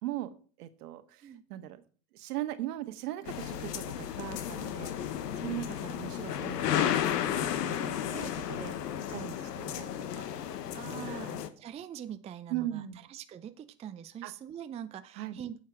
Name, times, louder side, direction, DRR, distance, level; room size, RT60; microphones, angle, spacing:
voice 1, 0.0-1.8 2.1-8.7 9.1-10.2 11.0-11.5 12.5-13.1 14.2-14.3 15.1-15.4, right 13 dB, 70° right, 10 dB, 1.5 m, -40 dB
sound 1, 3.3-11.5, left 10 dB, 80° left, 1.2 m, -33 dB
voice 2, 10.7-12.8 13.1-15.6, right 9 dB, 15° right, 10 dB, 0.4 m, -43 dB
9.5 x 6.5 x 6.3 m, 0.40 s
hypercardioid pair, 110°, 48 cm